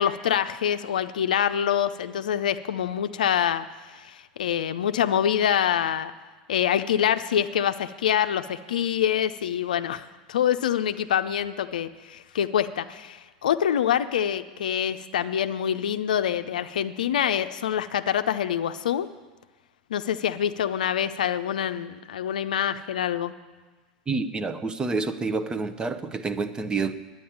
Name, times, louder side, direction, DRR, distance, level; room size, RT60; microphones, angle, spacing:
voice 1, 0.0-6.1 6.5-19.1 19.9-23.3, left 9 dB, 75° left, 11 dB, 0.5 m, -25 dB
voice 2, 24.1-27.0, right 4 dB, 20° right, 10 dB, 0.8 m, -28 dB
10.0 x 9.3 x 8.6 m, 1.3 s
hypercardioid pair, 90°, 4 cm